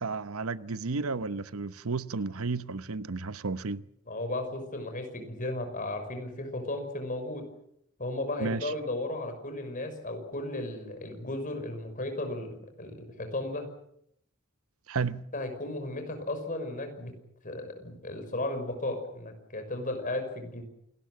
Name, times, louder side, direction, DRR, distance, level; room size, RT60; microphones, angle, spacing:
voice 1, 0.0-3.8 8.4-8.7 14.9-15.3, right 4 dB, 85° right, 0.9 m, -32 dB
voice 2, 4.1-7.5 8.0-13.7 15.3-17.1 17.4-20.6, left 2 dB, 40° left, 5.7 m, -35 dB
28.0 x 19.0 x 7.7 m
head